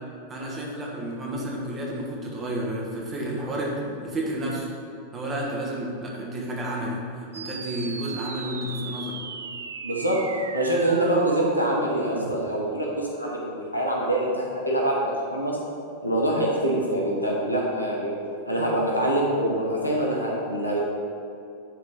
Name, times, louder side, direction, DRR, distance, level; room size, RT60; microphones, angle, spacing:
voice 1, 0.3-4.7 5.1-7.0 7.3-9.2, right 1 dB, 25° right, -4 dB, 1.7 m, -31 dB
sound 1, 7.3-12.3, right 4 dB, 70° right, 0.4 m, -36 dB
voice 2, 9.8-10.2 10.5-15.6 16.0-18.1 18.5-20.8, right 1 dB, 85° left, -2 dB, 1.2 m, -25 dB
10.5 x 3.9 x 3.8 m, 2.6 s
figure-of-eight pair, 90°, 0 cm